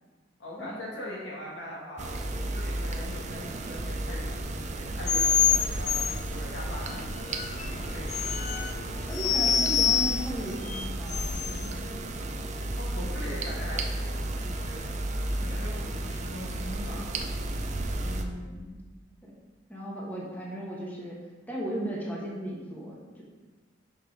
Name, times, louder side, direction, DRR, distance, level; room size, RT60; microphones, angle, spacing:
voice 1, 0.4-7.4 7.7-8.3 12.8-14.9 15.3-17.1, left 1 dB, 90° left, -4 dB, 2.0 m, -41 dB
sound 1, 2.0-18.2, right 1 dB, 40° right, 0.5 m, -33 dB
sound 2, 5.0-11.7, left 7 dB, 40° left, 0.4 m, -28 dB
voice 2, 9.1-11.9 18.0-18.8 19.2-19.4 19.7-21.2 21.5-23.2, right 1 dB, 10° left, -4 dB, 1.3 m, -36 dB
6.0 x 5.0 x 4.8 m, 1.3 s
head